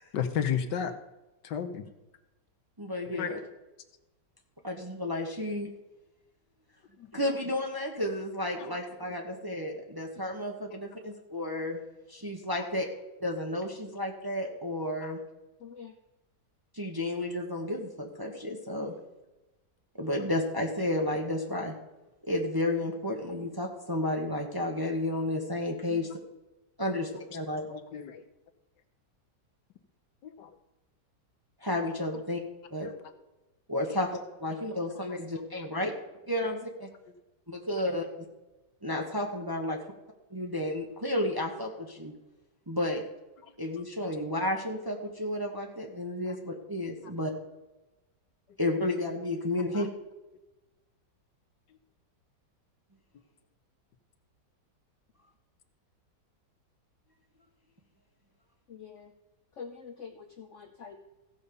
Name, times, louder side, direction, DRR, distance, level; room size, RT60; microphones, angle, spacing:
voice 1, 0.1-0.9 1.4-1.8 3.1-3.3 7.0-7.1 8.6-8.7 15.0-15.1 25.9-26.0 27.7-28.2 30.2-30.5 32.8-32.9 33.9-34.0 34.5-34.6 35.6-35.8 43.4-43.5 49.7-49.8, left 8 dB, 75° left, 9 dB, 1.5 m, -33 dB
voice 2, 2.8-3.4 4.6-5.7 7.1-11.8 12.1-12.9 13.2-15.2 16.7-18.9 20.0-21.7 22.3-26.1 26.8-27.7 31.6-32.4 32.7-32.9 33.7-34.1 34.4-35.9 36.3-36.9 37.5-38.3 38.8-39.8 40.3-42.1 42.7-43.0 43.6-47.3 48.6-49.9, left 1 dB, 15° right, 1 dB, 1.0 m, -32 dB
voice 3, 15.6-15.9 58.7-59.1 59.6-61.0, left 6 dB, 55° left, 6 dB, 0.9 m, -45 dB
15.0 x 5.4 x 6.9 m, 1.0 s
omnidirectional pair, 1.9 m